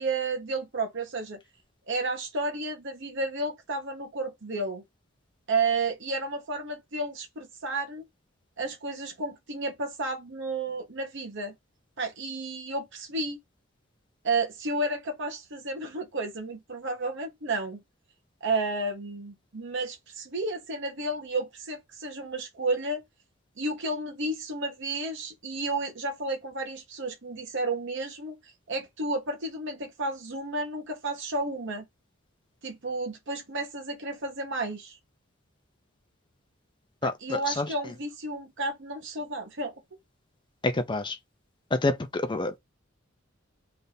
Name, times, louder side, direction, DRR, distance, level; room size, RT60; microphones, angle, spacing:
voice 1, 0.0-1.4 1.9-4.8 5.5-8.0 8.6-11.5 12.0-13.4 14.2-17.8 18.4-23.0 23.6-28.3 28.7-31.8 32.6-35.0 37.0-39.7, right 2 dB, 60° right, 1.1 m, -32 dB
voice 2, 37.0-37.9 40.6-41.2 41.7-42.6, left 2 dB, 25° left, 0.6 m, -28 dB
3.4 x 2.6 x 4.0 m
head